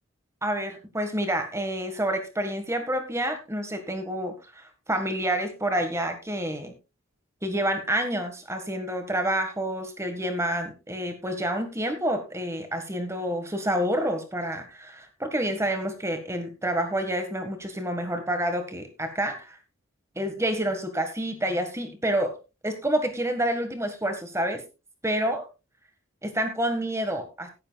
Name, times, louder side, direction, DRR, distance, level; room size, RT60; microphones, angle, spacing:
voice 1, 0.4-6.7 7.4-19.6 20.1-22.4 22.6-24.6 25.0-25.4 26.2-27.5, right 1 dB, 15° right, 6 dB, 1.6 m, -28 dB
18.0 x 9.9 x 2.4 m, 0.29 s
head